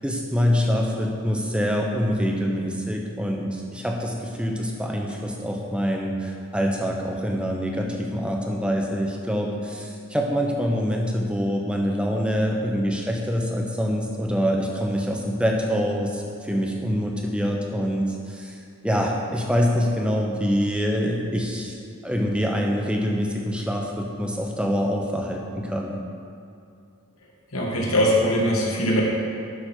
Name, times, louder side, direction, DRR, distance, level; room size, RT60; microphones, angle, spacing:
voice 1, 0.0-21.8 22.0-26.0, equal, 5° right, 0 dB, 0.9 m, -25 dB
voice 2, 27.5-29.0, equal, 80° left, -3 dB, 2.1 m, -21 dB
12.0 x 6.5 x 4.5 m, 2.5 s
head